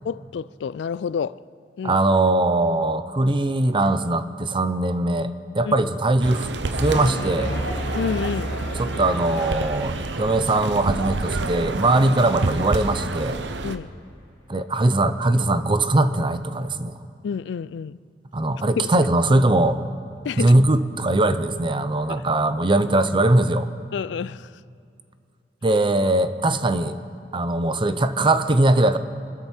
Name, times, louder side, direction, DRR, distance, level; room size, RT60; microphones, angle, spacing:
voice 1, 0.0-1.4 1.8-2.0 5.6-5.7 7.9-8.5 13.6-13.9 17.2-18.0 18.8-18.9 20.2-20.6 22.1-22.2 23.9-24.5, left 6 dB, 85° left, 0.3 m, -29 dB
voice 2, 1.8-7.6 8.8-13.4 14.5-17.0 18.3-19.8 20.4-23.7 25.6-27.0 27.3-29.0, right 2 dB, 30° right, 0.7 m, -21 dB
sound 1, 6.2-13.8, right 3 dB, 90° right, 0.8 m, -29 dB
sound 2, 6.7-10.5, equal, 60° left, 3.1 m, -31 dB
25.0 x 13.0 x 4.4 m
head